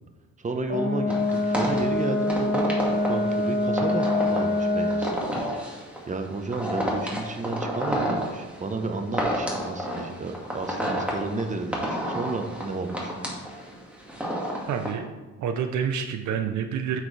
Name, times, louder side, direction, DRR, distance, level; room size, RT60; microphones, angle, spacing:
voice 1, 0.4-2.7 3.1-5.2 5.6-5.8 6.1-13.1, right 3 dB, 25° right, 5 dB, 1.0 m, -32 dB
Brass instrument, 0.7-5.2, left 2 dB, 35° left, 2.1 m, -25 dB
sound 1, 1.1-14.9, equal, 5° right, 2.0 m, -30 dB
voice 2, 14.7-15.1 15.4-17.0, right 7 dB, 70° right, 7 dB, 0.7 m, -28 dB
8.6 x 6.6 x 3.3 m, 1.2 s
cardioid pair, 90°, 30 cm